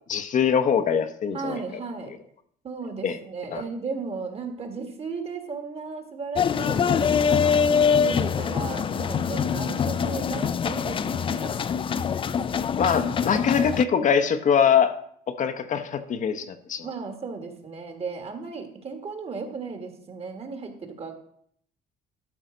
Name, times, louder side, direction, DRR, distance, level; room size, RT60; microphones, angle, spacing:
voice 1, 0.1-1.6 3.0-3.2 3.5-3.6 12.8-14.9 15.3-16.9, left 7 dB, 50° left, 9 dB, 0.8 m, -23 dB
voice 2, 1.3-2.1 2.6-11.7 16.8-21.1, right 4 dB, 35° right, 6 dB, 1.7 m, -35 dB
sound 1, 6.4-13.8, left 6 dB, 30° left, 0.4 m, -24 dB
12.5 x 5.4 x 5.1 m, 0.66 s
cardioid pair, 110°, 17 cm